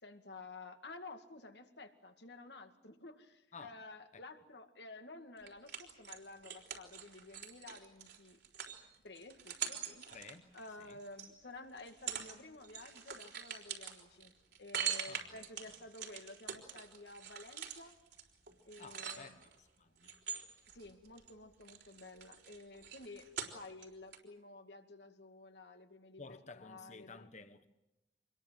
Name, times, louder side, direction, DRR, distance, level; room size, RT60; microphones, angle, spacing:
voice 1, 0.0-8.4 9.0-10.2 10.5-14.3 14.6-17.9 18.6-19.4 20.7-27.3, left 2 dB, 70° left, 2.3 m, -52 dB
sound 1, 5.5-11.3 11.8-12.4 12.6-19.5 20.0-21.3 21.6-23.9 24.1-24.2, right 8 dB, 65° right, 4.0 m, -43 dB
voice 2, 10.1-10.5 10.9-11.0 15.0-15.3 18.8-19.4 19.8-20.1 26.2-27.7, left 4 dB, 40° left, 1.3 m, -53 dB
26.5 x 21.5 x 7.7 m
head